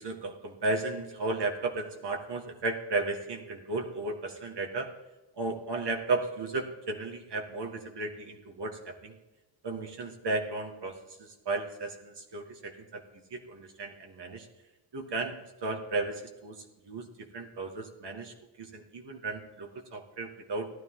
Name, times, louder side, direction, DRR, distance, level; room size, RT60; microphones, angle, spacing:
voice 1, 0.0-4.9 5.4-9.2 9.6-13.0 13.3-14.5 14.9-17.1 17.3-20.7, right 3 dB, 55° right, 3 dB, 2.0 m, -34 dB
16.0 x 12.5 x 3.8 m, 1.1 s
wide cardioid pair, 150°, 48 cm